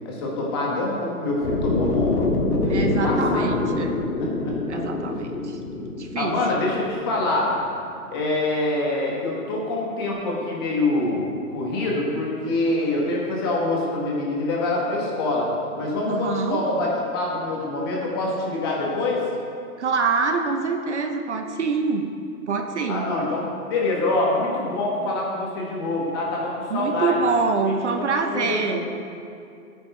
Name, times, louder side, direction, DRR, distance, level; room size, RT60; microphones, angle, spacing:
voice 1, 0.0-2.3 2.6-3.5 4.2-4.8 6.2-7.5 8.1-15.5 15.8-19.2 22.9-27.2 27.9-28.1 28.3-28.8, left 2 dB, 15° left, -3 dB, 1.2 m, -25 dB
sound 1, 1.4-7.5, left 3 dB, 80° left, 2.3 m, -26 dB
voice 2, 2.7-4.0 4.7-5.6 6.0-6.4 16.1-16.6 19.8-22.1 22.5-23.1 26.7-28.8, right 4 dB, 50° right, 5 dB, 0.9 m, -25 dB
16.5 x 9.2 x 3.3 m, 2.4 s
hypercardioid pair, 175°, 44 cm